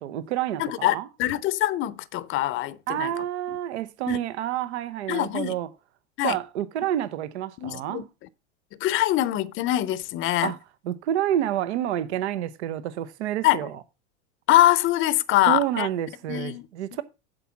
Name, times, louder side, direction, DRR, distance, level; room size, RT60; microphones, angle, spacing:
voice 1, 0.0-1.1 2.9-5.7 6.2-8.1 10.4-10.6 10.8-13.7 15.5-17.0, right 11 dB, 75° right, 0.9 m, -29 dB
voice 2, 0.6-3.1 4.1-4.2 5.1-5.5 6.2-6.4 7.6-8.0 8.8-10.5 13.4-13.7 14.5-15.9 16.3-16.7, left 14 dB, 35° left, 0.7 m, -23 dB
7.8 x 4.8 x 7.2 m
hypercardioid pair, 100°, 34 cm